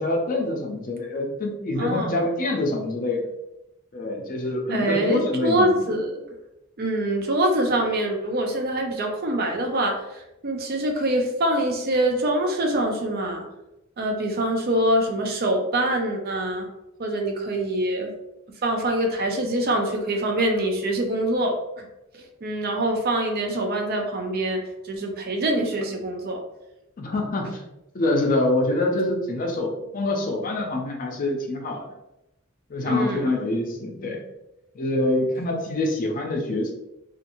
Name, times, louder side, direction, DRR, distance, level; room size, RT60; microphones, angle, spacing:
voice 1, 0.0-3.3 3.9-6.0 27.0-27.6 27.9-31.8 32.7-34.2 34.7-36.7, left 2 dB, 40° left, 1 dB, 0.5 m, -25 dB
voice 2, 1.8-2.1 4.7-6.3 6.8-13.4 14.0-16.7 17.0-18.1 18.6-21.8 22.1-24.6 24.8-26.4 32.8-33.3, right 1 dB, 50° right, 3 dB, 0.5 m, -24 dB
2.8 x 2.4 x 2.6 m, 0.90 s
head